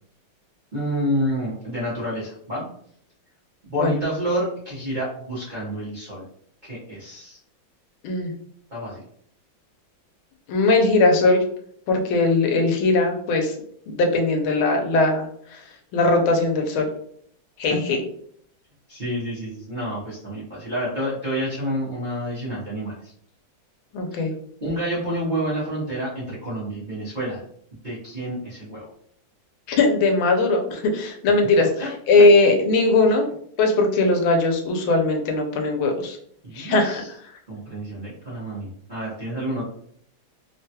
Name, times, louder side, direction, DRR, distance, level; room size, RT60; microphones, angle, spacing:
voice 1, 0.7-2.6 3.6-6.2 6.6-7.4 8.7-9.0 17.7-17.8 18.9-23.1 24.1-24.2 24.6-27.4 27.8-28.9 31.6-31.9 36.4-37.1 37.5-39.6, equal, 40° right, -9 dB, 0.6 m, -29 dB
voice 2, 10.5-11.4 11.9-13.5 13.9-15.3 15.9-16.9 17.6-18.0 23.9-24.3 29.7-31.6 32.1-33.2 33.6-36.2 36.6-37.0, left 3 dB, 85° left, 3 dB, 1.4 m, -19 dB
3.5 x 2.2 x 2.8 m, 0.64 s
omnidirectional pair, 2.2 m